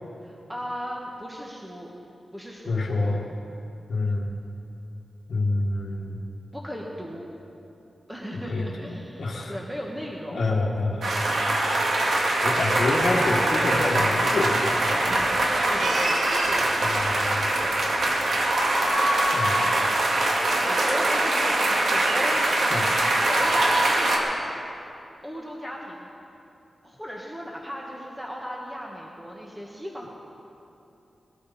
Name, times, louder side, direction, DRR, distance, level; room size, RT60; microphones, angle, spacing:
voice 1, 0.2-1.9 2.3-3.2 6.5-7.3 8.1-10.5 11.0-11.3 15.6-18.3 18.9-19.1 20.6-22.5 23.1-24.3 25.2-26.1 26.8-30.1, equal, 5° right, -2 dB, 1.4 m, -37 dB
voice 2, 2.6-3.2 3.9-4.3 5.3-6.2 8.5-8.6 8.9-9.5 10.3-11.1 12.4-15.0 16.8-16.9 19.3-19.6 22.7-22.9, left 2 dB, 65° left, -4 dB, 1.7 m, -27 dB
sound 1, 11.0-24.2, right 1 dB, 75° right, 2.1 m, -23 dB
20.0 x 13.0 x 4.2 m, 2.8 s
wide cardioid pair, 110°, 0 cm